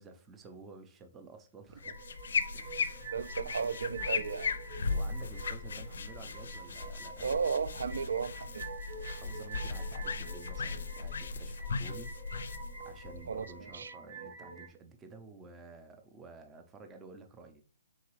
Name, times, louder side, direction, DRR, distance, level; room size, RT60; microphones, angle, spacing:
voice 1, 0.0-2.0 2.5-3.2 4.8-7.3 9.1-17.6, right 3 dB, 10° right, 0.4 m, -52 dB
sound 1, 1.8-13.7, left 4 dB, 75° left, 0.4 m, -37 dB
sound 2, 1.8-14.7, right 4 dB, 35° right, 0.8 m, -48 dB
voice 2, 3.1-4.5 7.2-8.7 13.3-13.9, right 6 dB, 80° right, 0.3 m, -34 dB
3.9 x 3.7 x 3.0 m
hypercardioid pair, 165°, 0 cm